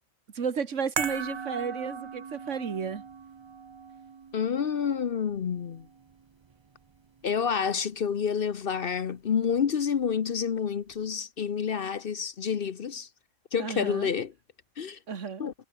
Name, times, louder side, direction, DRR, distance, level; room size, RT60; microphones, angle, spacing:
voice 1, 0.3-3.0 13.6-14.1 15.1-15.4, right 6 dB, 75° right, 1.8 m, -32 dB
sound 1, 1.0-7.4 7.6-7.8, right 6 dB, 40° right, 0.4 m, -39 dB
voice 2, 4.3-5.9 7.2-13.1 13.5-14.3 14.8-15.0 15.4-15.5, left 7 dB, 50° left, 0.9 m, -28 dB
omnidirectional pair, 1.3 m